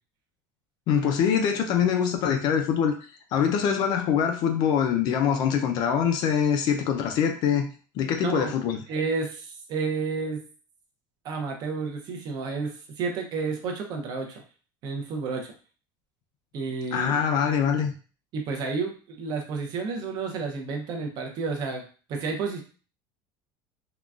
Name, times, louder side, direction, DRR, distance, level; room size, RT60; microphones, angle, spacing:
voice 1, 0.9-2.9 3.3-7.7 8.0-8.8 16.9-17.9, left 7 dB, 40° left, 5 dB, 0.4 m, -24 dB
voice 2, 8.2-8.5 8.9-10.4 11.2-14.4 14.8-15.5 16.5-17.2 18.3-21.8 22.1-22.6, right 4 dB, 40° right, 2 dB, 0.6 m, -31 dB
3.7 x 2.2 x 2.3 m, 0.38 s
cardioid pair, 180°, 11 cm